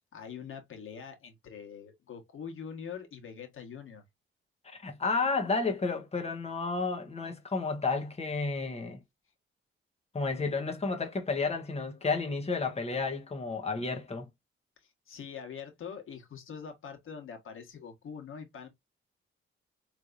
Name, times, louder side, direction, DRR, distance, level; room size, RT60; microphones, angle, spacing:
voice 1, 0.1-4.0 15.1-18.7, left 7 dB, 75° left, 1.5 m, -44 dB
voice 2, 4.6-9.0 10.1-14.3, left 4 dB, 30° left, 1.2 m, -31 dB
4.5 x 3.3 x 2.6 m
cardioid pair, 95°, 21 cm